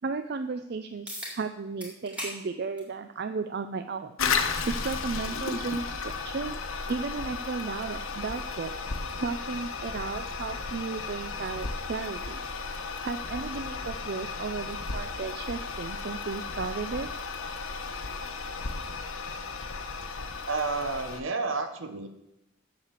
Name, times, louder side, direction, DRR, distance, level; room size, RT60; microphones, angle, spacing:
voice 1, 0.0-4.2 4.6-6.6 6.9-8.7 9.2-12.7 13.0-17.2, right 4 dB, 50° right, 9 dB, 0.4 m, -34 dB
sound 1, 1.1-1.4 1.8-2.4 2.8-2.9 4.0-4.1 9.0-9.1, equal, 5° right, 2.1 m, -37 dB
Toilet flush, 4.2-21.2, left 4 dB, 80° left, 1.0 m, -34 dB
voice 2, 20.5-22.1, right 3 dB, 65° right, 8 dB, 1.1 m, -30 dB
7.8 x 6.7 x 7.2 m, 0.87 s
head